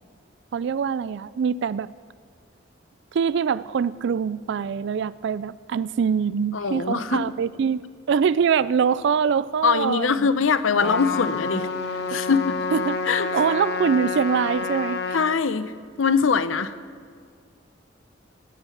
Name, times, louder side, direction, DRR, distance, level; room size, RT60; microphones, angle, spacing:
voice 1, 0.5-1.9 3.1-7.8 8.1-10.3 12.1-12.2 12.7-15.2, right 6 dB, 60° right, 18 dB, 0.3 m, -24 dB
voice 2, 6.5-7.2 9.6-12.5 13.1-13.3 15.1-15.7 16.0-16.8, left 5 dB, 80° left, 13 dB, 0.7 m, -22 dB
Trumpet, 10.8-15.2, left 4 dB, 55° left, 1.3 m, -28 dB
17.0 x 9.0 x 7.1 m, 2.2 s
head